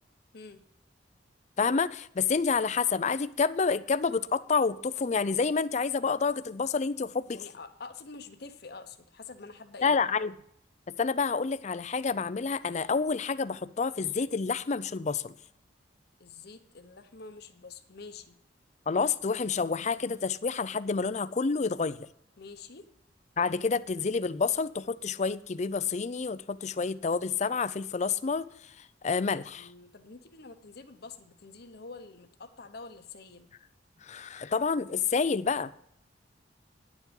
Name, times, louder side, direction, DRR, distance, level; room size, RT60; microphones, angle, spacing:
voice 1, 1.6-7.4 9.8-10.3 11.0-15.3 18.9-22.1 23.4-28.5 29.0-29.7 34.0-35.7, left 5 dB, 40° left, 15 dB, 0.5 m, -28 dB
voice 2, 7.3-10.0 16.2-18.4 22.4-22.9 29.5-33.5, left 4 dB, 60° left, 7 dB, 1.0 m, -47 dB
11.0 x 7.3 x 5.2 m, 0.69 s
head